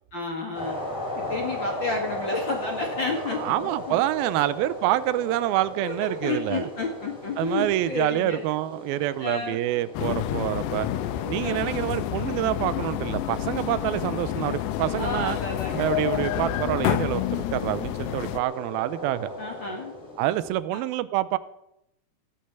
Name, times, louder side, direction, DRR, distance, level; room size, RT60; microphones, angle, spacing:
voice 1, 0.1-0.8 1.2-4.0 4.4-4.5 5.8-8.4 9.2-9.6 11.4-11.9 15.0-15.9 19.4-19.9 20.7-20.8, left 3 dB, 40° left, 1 dB, 2.0 m, -31 dB
sound 1, 0.5-20.5, left 1 dB, 15° left, 3.3 m, -37 dB
voice 2, 3.3-6.7 7.4-10.9 11.3-15.4 15.8-19.3 20.2-21.4, right 15 dB, 80° right, 15 dB, 2.4 m, -27 dB
sound 2, 9.9-18.4, left 15 dB, 80° left, 2.3 m, -29 dB
17.0 x 8.7 x 8.2 m, 0.80 s
omnidirectional pair, 4.7 m